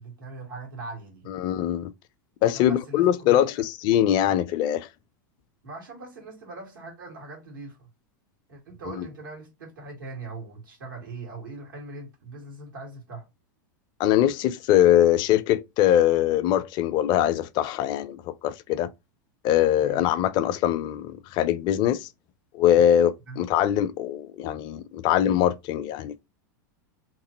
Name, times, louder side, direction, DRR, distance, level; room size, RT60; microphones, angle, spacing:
voice 1, 0.0-1.3 2.5-3.7 5.6-7.9 8.5-13.3 19.8-20.0 23.3-23.4, right 2 dB, 85° right, 1.8 m, -41 dB
voice 2, 1.3-1.9 2.4-3.5 3.8-4.9 9.0-9.1 14.0-18.9 19.4-22.1 22.5-26.2, left 11 dB, 45° left, 0.4 m, -22 dB
3.0 x 2.6 x 3.8 m
hypercardioid pair, 100°, 11 cm